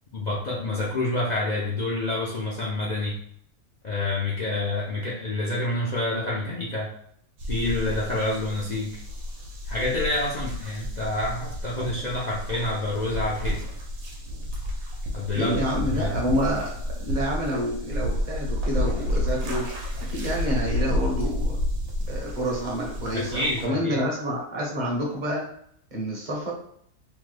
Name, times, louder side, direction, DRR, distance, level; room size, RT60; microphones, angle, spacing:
voice 1, 0.1-3.2 3.8-6.9 7.5-9.0 9.7-13.6 15.1-16.1 23.1-24.0, left 2 dB, 65° left, -5 dB, 0.4 m, -28 dB
sound 1, 7.4-23.7, left 1 dB, 85° right, 1.2 m, -30 dB
voice 2, 15.3-19.7 20.0-21.6 22.1-25.5 25.9-26.5, equal, 40° right, -3 dB, 0.7 m, -28 dB
3.1 x 2.1 x 3.2 m, 0.67 s
omnidirectional pair, 1.5 m